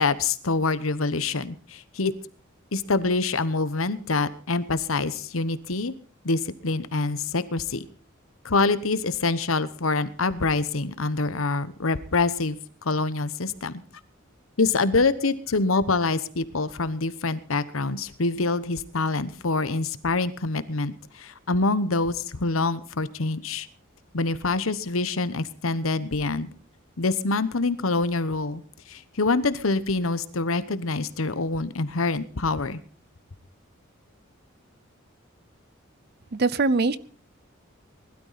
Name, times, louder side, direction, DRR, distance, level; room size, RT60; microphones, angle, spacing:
voice 1, 0.0-2.1 2.7-5.9 6.2-7.8 8.4-13.8 14.6-23.7 24.1-26.5 27.0-28.6 28.9-32.8, left 3 dB, 85° left, 14 dB, 1.1 m, -25 dB
voice 2, 36.3-37.0, right 3 dB, 50° right, 18 dB, 0.7 m, -22 dB
20.0 x 12.5 x 4.2 m, 0.40 s
head